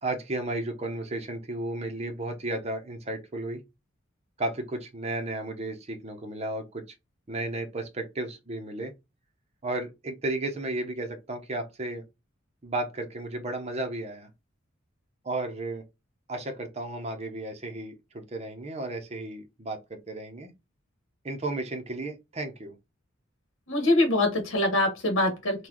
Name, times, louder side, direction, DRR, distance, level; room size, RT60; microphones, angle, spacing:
voice 1, 0.0-3.6 4.4-6.8 7.3-8.9 9.6-12.0 12.6-14.3 15.2-15.8 16.3-20.5 21.2-22.7, right 2 dB, 30° right, 0.7 m, -33 dB
voice 2, 23.7-25.7, left 1 dB, 65° left, 1.2 m, -24 dB
3.9 x 2.2 x 3.0 m
head